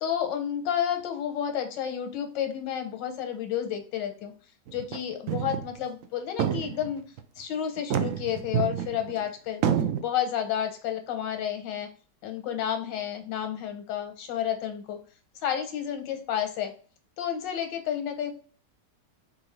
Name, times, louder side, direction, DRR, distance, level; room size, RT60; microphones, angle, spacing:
voice 1, 0.0-4.3 4.7-7.0 7.4-9.6 10.0-11.9 12.2-15.0 15.4-16.7 17.2-18.3, left 9 dB, 85° left, 6 dB, 1.5 m, -31 dB
sound 1, 4.7-5.0 5.3-5.7 6.0-6.1 6.4-7.2 7.8-9.2 9.6-10.0, right 9 dB, 75° right, 0.7 m, -28 dB
4.7 x 2.6 x 3.1 m, 0.40 s
omnidirectional pair, 1.9 m